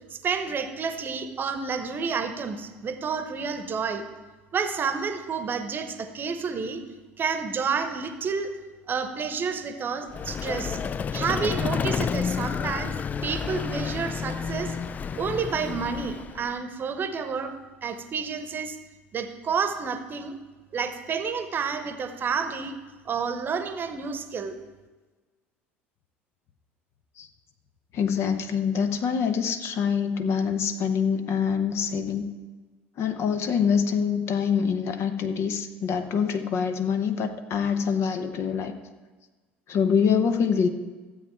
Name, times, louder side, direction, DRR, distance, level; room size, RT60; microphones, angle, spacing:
voice 1, 0.1-4.0 4.5-6.8 7.2-8.5 8.9-10.8 11.1-12.9 13.2-14.7 15.2-17.5 17.8-18.8 19.1-20.4 20.7-22.8 23.1-24.6, right 5 dB, 30° right, 9 dB, 1.0 m, -30 dB
Vehicle, 10.1-16.5, left 6 dB, 25° left, 0.3 m, -30 dB
voice 2, 27.9-32.3 33.0-38.7 39.7-40.7, left 6 dB, 45° left, 8 dB, 0.8 m, -25 dB
13.0 x 8.1 x 4.6 m, 1.3 s
figure-of-eight pair, 65°, 6 cm